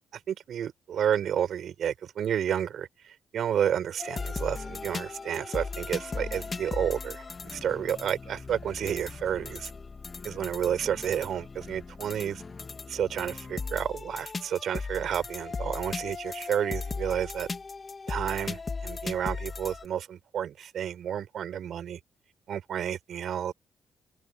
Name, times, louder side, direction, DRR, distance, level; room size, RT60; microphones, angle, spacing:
voice 1, 0.1-9.7 10.2-12.4 12.9-17.5 18.1-22.0 22.5-23.5, right 9 dB, 65° right, 5.3 m, -31 dB
sound 1, 4.0-19.9, left 4 dB, 30° left, 2.1 m, -37 dB
open air
cardioid pair, 90°, 0 cm